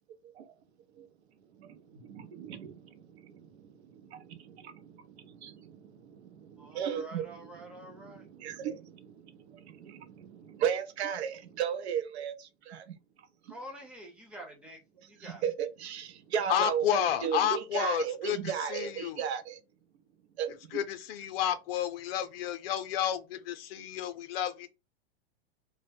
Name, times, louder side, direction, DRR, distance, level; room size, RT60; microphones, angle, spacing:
voice 1, 0.2-0.6 0.9-1.1 1.4-5.7 6.5-13.5 15.0-19.6 20.4-20.8, right 8 dB, 80° right, 0.6 m, -36 dB
voice 2, 6.6-8.3 13.5-15.4, equal, 5° right, 0.6 m, -47 dB
voice 3, 16.5-18.4 18.7-19.2 20.7-24.7, left 9 dB, 65° left, 0.6 m, -31 dB
2.2 x 2.0 x 3.3 m
supercardioid pair, 140°, 32 cm